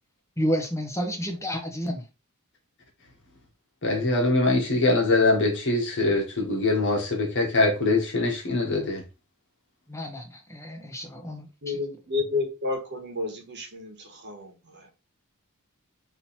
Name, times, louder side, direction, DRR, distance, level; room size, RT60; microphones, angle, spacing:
voice 1, 0.4-2.0 9.9-11.7, equal, 15° left, 1.0 m, -30 dB
voice 2, 3.8-9.0, left 2 dB, 55° left, 1.4 m, -23 dB
voice 3, 11.6-15.0, left 3 dB, 50° right, 1.2 m, -31 dB
3.8 x 3.0 x 4.2 m
head